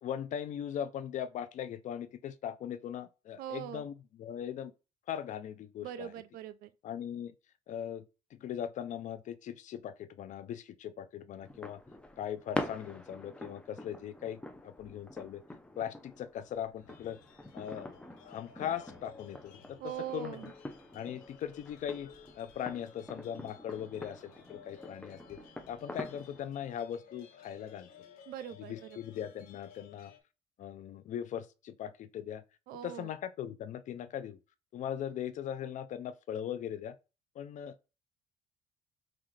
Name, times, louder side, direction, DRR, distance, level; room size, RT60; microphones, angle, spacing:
voice 1, 0.0-4.7 5.1-6.1 6.8-7.3 7.7-8.0 8.3-11.8 12.2-15.4 15.8-17.2 17.5-18.0 18.2-19.8 20.1-20.4 20.9-22.1 22.4-25.4 25.7-27.9 28.7-30.1 30.6-32.4 32.8-34.4 34.7-36.9 37.4-37.7, left 9 dB, 55° left, 0.4 m, -39 dB
voice 2, 3.4-3.9 5.8-6.7 19.8-20.5 28.3-29.0 32.7-33.1, right 11 dB, 75° right, 0.5 m, -42 dB
sound 1, 11.4-26.4, left 1 dB, 5° left, 0.6 m, -45 dB
sound 2, 16.8-30.2, left 6 dB, 80° left, 0.9 m, -56 dB
5.7 x 2.4 x 3.2 m
cardioid pair, 100°, 15 cm